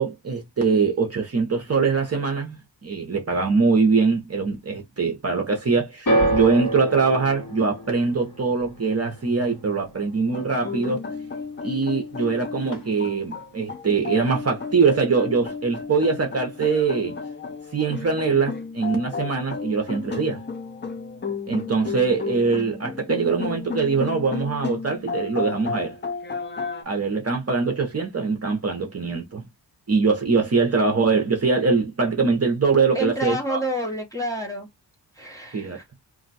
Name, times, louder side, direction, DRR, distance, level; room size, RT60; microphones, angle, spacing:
voice 1, 0.0-11.0 11.6-17.2 17.7-20.4 21.5-26.0 26.8-29.4 29.9-33.6 35.5-35.8, right 4 dB, 35° right, 0.7 m, -23 dB
sound 1, 6.1-12.3 12.6-13.3 14.0-14.1, right 1 dB, 45° left, 1.3 m, -29 dB
sound 2, 10.3-26.8, left 5 dB, 25° left, 0.5 m, -33 dB
voice 2, 32.9-34.7 35.2-35.8, equal, 10° left, 0.8 m, -29 dB
2.6 x 2.2 x 4.0 m
wide cardioid pair, 140°, 43 cm